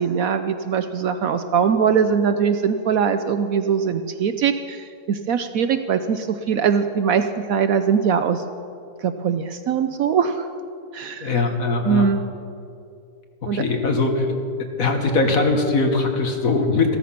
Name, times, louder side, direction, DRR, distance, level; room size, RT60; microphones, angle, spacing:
voice 1, 0.0-8.4 9.0-10.5 10.9-11.3 11.8-12.2 13.5-13.6, right 7 dB, 65° right, 9 dB, 0.9 m, -21 dB
voice 2, 11.2-12.1 13.5-14.3 14.6-17.0, left 3 dB, 55° left, 4 dB, 1.8 m, -21 dB
15.0 x 13.5 x 5.8 m, 2.5 s
omnidirectional pair, 1.8 m